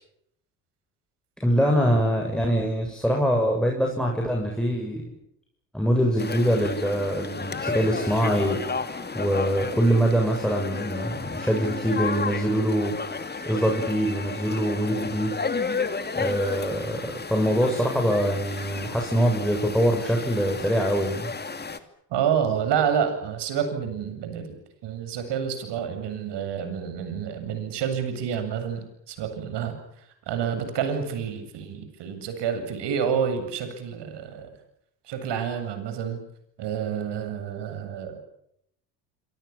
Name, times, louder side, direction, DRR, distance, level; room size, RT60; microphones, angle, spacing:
voice 1, 1.4-5.0 5.7-12.9 13.5-15.4 16.1-21.3, equal, ahead, 1 dB, 7.4 m, -24 dB
sound 1, 6.2-21.8, left 4 dB, 20° left, 2.8 m, -32 dB
voice 2, 22.1-24.6 24.8-29.7 30.3-34.5 35.1-36.2 36.6-38.2, right 8 dB, 55° right, 8 dB, 7.9 m, -28 dB
27.0 x 26.0 x 7.3 m, 0.74 s
hypercardioid pair, 65°, 50 cm